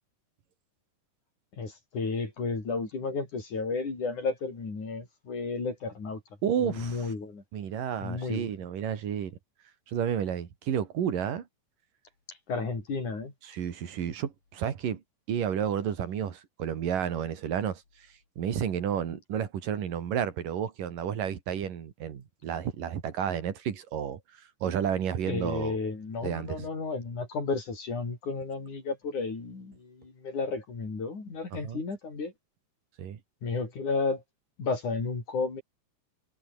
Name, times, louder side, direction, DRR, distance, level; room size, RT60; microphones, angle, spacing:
voice 1, 1.6-6.2 6.6-7.4 8.0-8.5 12.5-13.3 25.2-32.3 33.4-34.2 34.6-35.6, left 4 dB, 65° left, 7.7 m, -32 dB
voice 2, 6.4-7.1 7.5-9.4 9.9-11.5 13.4-15.0 15.3-17.8 18.4-24.2 24.6-25.8 26.2-26.6 31.5-31.8 33.0-33.2, right 8 dB, 80° right, 4.0 m, -31 dB
omnidirectional pair, 3.8 m